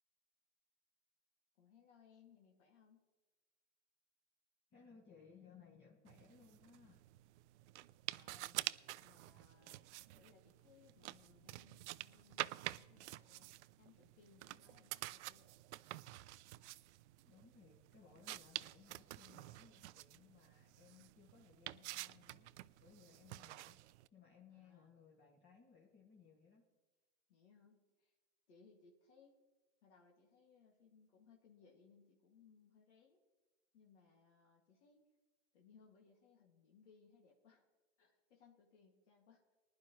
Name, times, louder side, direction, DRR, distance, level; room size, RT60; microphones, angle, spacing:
voice 1, 1.5-3.1 8.2-8.6 9.0-9.8 10.1-15.5 23.2-23.4 24.5-25.0 27.3-28.2 28.5-29.4 29.8-33.2 33.7-35.1 35.5-37.6 38.0-39.5, left 6 dB, 75° left, 0 dB, 2.2 m, -67 dB
voice 2, 4.7-7.0 17.3-22.5 22.8-23.8 24.1-26.7, left 6 dB, 30° left, -2 dB, 2.0 m, -63 dB
sound 1, 6.1-24.1, right 17 dB, 75° right, 0.5 m, -49 dB
19.5 x 11.0 x 3.1 m, 1.3 s
hypercardioid pair, 115°, 35 cm